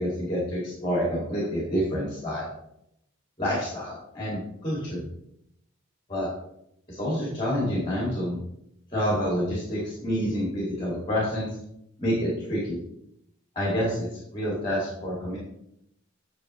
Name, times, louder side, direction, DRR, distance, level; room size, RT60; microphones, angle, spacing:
voice 1, 0.0-2.5 3.4-5.0 6.1-6.3 6.9-8.4 8.9-11.5 12.0-12.8 13.6-15.4, equal, 25° left, -5 dB, 2.1 m, -28 dB
8.7 x 6.3 x 3.1 m, 0.78 s
head